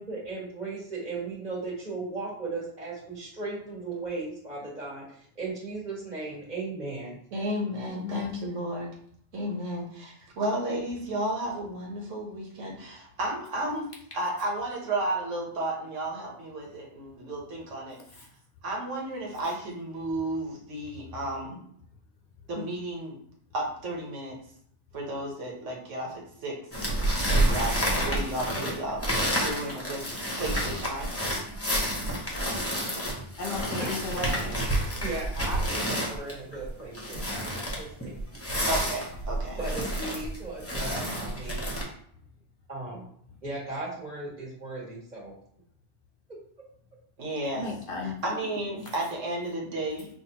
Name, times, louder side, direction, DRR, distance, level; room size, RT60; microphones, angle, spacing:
voice 1, 0.0-5.0 5.4-7.2 33.8-33.9 35.0-38.2 39.6-41.7 42.7-43.0 43.4-45.3, right 3 dB, 35° right, -6 dB, 1.7 m, -36 dB
voice 2, 7.3-8.9 9.3-18.3 18.6-21.6 22.5-23.2 23.5-24.4 24.9-26.6 27.3-29.0 29.4-30.0 30.3-31.1 38.7-39.6 47.2-47.6 48.0-50.1, right 1 dB, 85° right, -1 dB, 1.4 m, -33 dB
voice 3, 7.9-8.3 33.4-34.4 47.5-48.1 48.8-48.9, left 3 dB, 55° left, 0 dB, 0.7 m, -34 dB
sound 1, 26.7-41.8, right 1 dB, 15° left, 0.8 m, -29 dB
5.9 x 2.6 x 2.9 m, 0.65 s
omnidirectional pair, 1.2 m